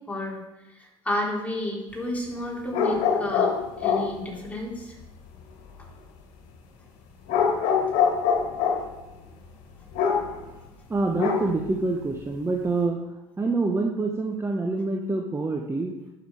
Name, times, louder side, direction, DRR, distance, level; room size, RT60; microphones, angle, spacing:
voice 1, 0.1-0.5 0.7-5.0, left 1 dB, 10° left, -3 dB, 3.7 m, -31 dB
sound 1, 2.7-4.2 7.3-8.9 9.9-10.4 11.2-11.7, left 6 dB, 65° left, 1.9 m, -24 dB
voice 2, 10.9-16.0, right 3 dB, 15° right, 2 dB, 1.1 m, -26 dB
11.5 x 6.2 x 4.8 m, 1.0 s
hypercardioid pair, 65°, 14 cm